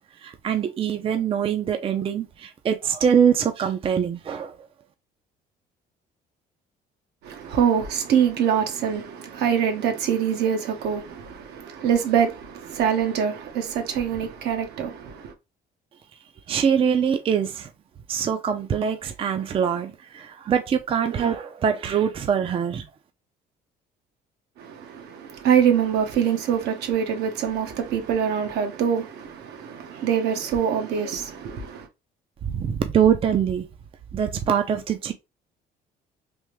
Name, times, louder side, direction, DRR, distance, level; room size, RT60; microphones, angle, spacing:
voice 1, 0.2-4.5 16.5-17.7 18.1-22.8 32.4-33.7 34.1-35.1, right 8 dB, 35° right, 0.4 m, -23 dB
voice 2, 7.2-15.3 24.6-31.9, right 8 dB, 75° right, 0.9 m, -24 dB
3.4 x 2.5 x 3.0 m
cardioid pair, 110°, 17 cm